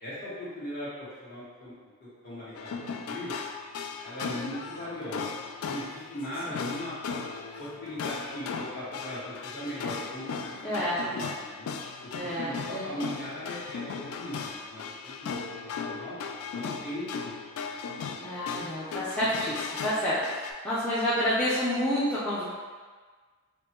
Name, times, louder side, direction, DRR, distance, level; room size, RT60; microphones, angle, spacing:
voice 1, 0.0-1.7 2.0-2.8 3.0-3.4 4.0-5.3 5.6-6.9 7.6-10.6 11.0-11.7 12.2-16.1 16.5-17.3, equal, 45° left, -10 dB, 1.5 m, -39 dB
sound 1, 2.5-20.5, left 5 dB, 80° left, 0.3 m, -37 dB
voice 2, 10.6-11.0 12.1-12.8 18.2-22.4, equal, 5° left, -11 dB, 0.5 m, -29 dB
5.0 x 2.1 x 2.9 m, 1.5 s
head